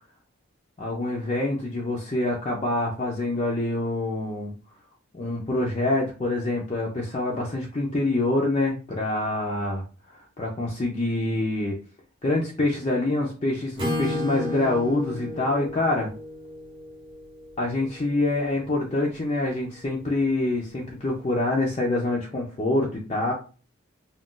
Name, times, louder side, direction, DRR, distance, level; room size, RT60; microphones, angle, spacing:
voice 1, 0.8-4.5 5.1-9.8 10.4-11.8 12.2-16.1 17.6-23.3, left 2 dB, 30° left, -2 dB, 0.5 m, -26 dB
Acoustic guitar / Strum, 13.8-17.7, left 1 dB, 25° right, 0.8 m, -33 dB
2.4 x 2.2 x 3.7 m, 0.37 s
head